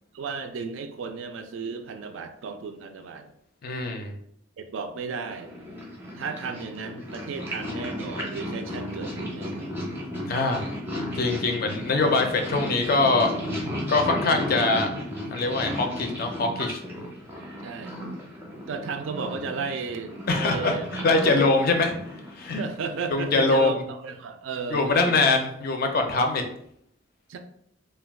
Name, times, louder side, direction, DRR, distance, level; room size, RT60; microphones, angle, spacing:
voice 1, 0.1-3.3 4.6-5.5 6.1-9.8 17.6-18.0 18.7-20.9 21.1-21.6 22.6-25.3 27.3-27.4, right 5 dB, 65° right, 6 dB, 0.3 m, -34 dB
voice 2, 3.6-4.1 10.3-10.7 11.1-13.3 13.9-14.9 15.3-16.8 20.3-20.8 21.0-21.9 22.4-22.6 23.1-23.8 24.7-26.4, left 3 dB, 45° left, 4 dB, 0.4 m, -23 dB
Purr, 5.3-22.9, equal, 10° right, 0.5 m, -34 dB
2.3 x 2.2 x 3.4 m, 0.71 s
head